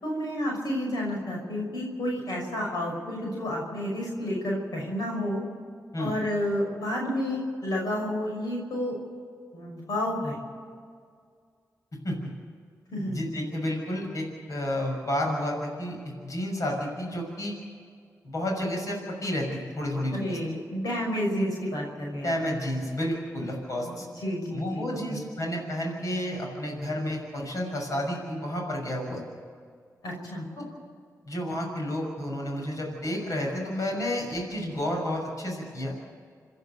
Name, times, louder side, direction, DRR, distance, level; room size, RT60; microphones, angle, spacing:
voice 1, 0.0-5.4 6.0-9.0 9.5-10.4 12.9-13.2 20.1-22.3 23.9-25.2 30.0-30.4, left 1 dB, 80° left, -2 dB, 6.1 m, -30 dB
voice 2, 13.0-16.0 16.2-17.6 18.2-20.4 22.2-24.1 24.5-29.2 30.6-30.7 31.3-35.9, left 1 dB, 60° left, 0 dB, 6.4 m, -31 dB
27.5 x 10.5 x 9.2 m, 2.1 s
cardioid pair, 60°, 7 cm